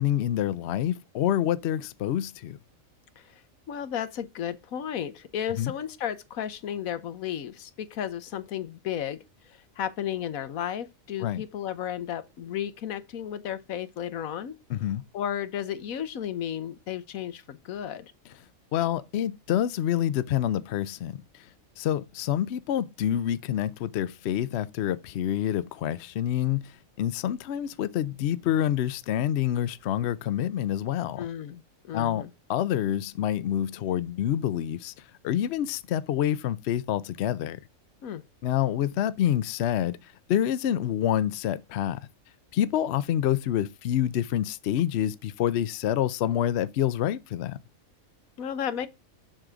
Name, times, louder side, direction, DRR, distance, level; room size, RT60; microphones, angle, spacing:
voice 1, 0.0-2.6 5.6-5.7 11.2-11.4 14.7-15.0 18.7-21.2 21.8-31.3 31.9-32.2 32.5-34.9 35.2-37.6 38.4-40.0 40.3-42.0 42.5-47.6, left 11 dB, 60° left, 0.7 m, -27 dB
voice 2, 3.7-9.2 9.5-14.5 15.1-18.1 31.2-32.3 38.0-38.2 48.4-48.9, left 9 dB, 80° left, 1.3 m, -33 dB
7.5 x 6.5 x 3.6 m
omnidirectional pair, 1.4 m